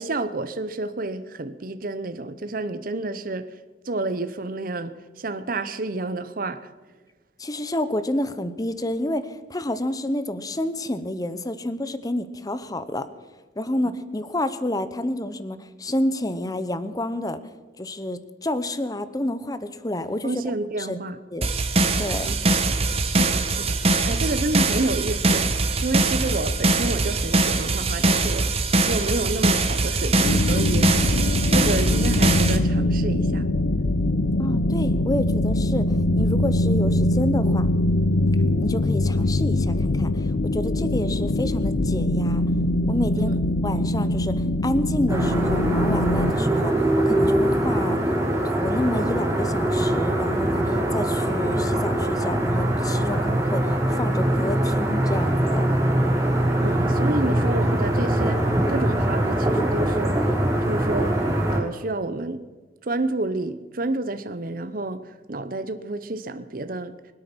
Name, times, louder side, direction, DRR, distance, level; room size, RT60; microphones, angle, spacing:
voice 1, 0.0-3.5 3.8-6.7 20.2-21.2 22.2-22.4 22.7-25.5 25.8-31.0 31.5-33.5 43.2-43.4 56.6-58.4 58.7-60.4 60.6-61.2 61.5-62.4 62.8-66.9, right 2 dB, 50° right, 0.8 m, -29 dB
voice 2, 7.4-13.1 13.6-17.4 17.8-20.3 20.8-21.0 21.3-21.5 22.0-22.4 34.4-37.7 38.6-42.4 42.9-48.0 48.4-55.7, left 1 dB, 20° left, 0.8 m, -29 dB
sound 1, 21.4-32.6, right 2 dB, 35° right, 1.4 m, -22 dB
sound 2, 30.2-46.3, left 1 dB, 55° left, 0.6 m, -22 dB
sound 3, 45.1-61.6, right 1 dB, 15° right, 4.4 m, -22 dB
24.0 x 8.8 x 6.1 m
head